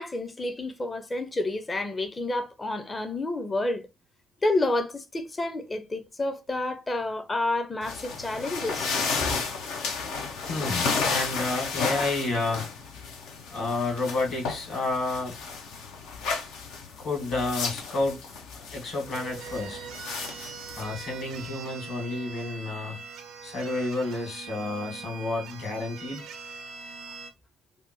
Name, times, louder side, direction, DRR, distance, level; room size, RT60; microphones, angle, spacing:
voice 1, 0.0-3.9 4.4-9.4, left 2 dB, 25° left, 0.7 m, -29 dB
sound 1, 7.8-21.5, left 5 dB, 75° left, 0.7 m, -33 dB
voice 2, 10.5-12.7 13.5-15.3 17.0-18.2 18.5-19.8 20.8-23.0 23.4-26.3, left 2 dB, 55° left, 2.0 m, -30 dB
sound 2, 19.0-27.3, right 6 dB, 75° right, 0.6 m, -42 dB
3.4 x 2.2 x 3.0 m
hypercardioid pair, 55°, 0 cm